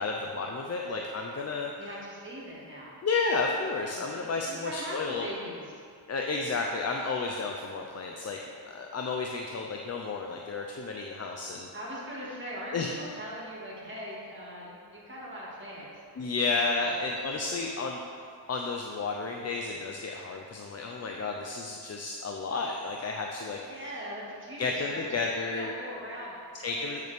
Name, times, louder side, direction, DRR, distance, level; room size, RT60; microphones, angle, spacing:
voice 1, 0.0-1.7 3.0-5.3 6.1-8.4 8.7-11.7 12.7-12.9 16.2-18.0 18.5-23.6 24.6-25.7 26.6-27.0, left 3 dB, 40° left, 1 dB, 0.5 m, -32 dB
voice 2, 1.8-3.0 3.9-5.7 11.7-16.9 23.6-25.1 25.4-26.3 26.7-26.9, equal, 25° right, -6 dB, 1.9 m, -41 dB
8.5 x 6.5 x 3.4 m, 2.3 s
wide cardioid pair, 130°, 43 cm